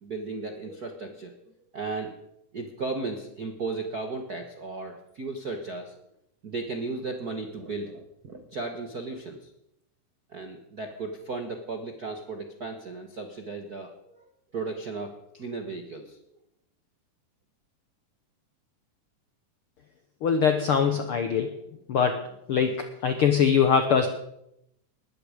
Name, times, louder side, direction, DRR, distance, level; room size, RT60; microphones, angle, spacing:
voice 1, 0.0-1.4 1.7-2.1 2.5-5.9 6.4-9.5 10.3-16.2, right 3 dB, 60° right, 4 dB, 1.0 m, -35 dB
voice 2, 20.2-21.5 21.9-22.2 22.5-24.1, left 7 dB, 75° left, 7 dB, 1.3 m, -22 dB
20.5 x 14.0 x 5.0 m, 0.79 s
omnidirectional pair, 3.9 m